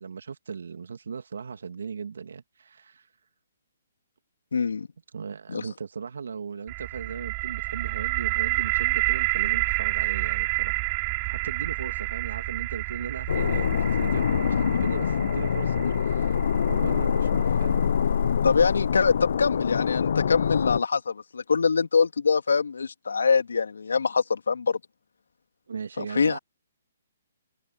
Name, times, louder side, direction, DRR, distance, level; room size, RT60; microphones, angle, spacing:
voice 1, 0.0-3.1 5.1-10.9 11.3-16.4 16.7-17.8 25.7-26.4, right 6 dB, 75° right, 2.3 m, -37 dB
voice 2, 4.5-4.9 5.5-5.6 15.8-15.9 18.4-24.8 26.0-26.4, left 5 dB, 80° left, 2.6 m, -24 dB
sound 1, 6.7-18.5, right 33 dB, 30° right, 3.7 m, -30 dB
sound 2, 13.3-20.8, left 7 dB, 65° left, 0.5 m, -25 dB
hypercardioid pair, 140°, 0 cm